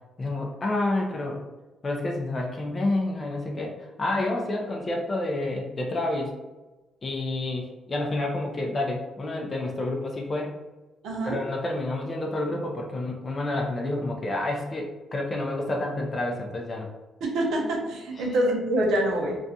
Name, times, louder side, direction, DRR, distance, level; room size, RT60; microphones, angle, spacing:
voice 1, 0.2-1.4 1.8-6.3 7.0-10.6 11.3-16.9 18.2-18.3, left 2 dB, 35° left, 0 dB, 0.4 m, -29 dB
voice 2, 11.0-11.4 17.3-19.4, right 1 dB, 80° right, -1 dB, 0.6 m, -25 dB
2.5 x 2.2 x 2.6 m, 1.1 s
cardioid pair, 90°, 0 cm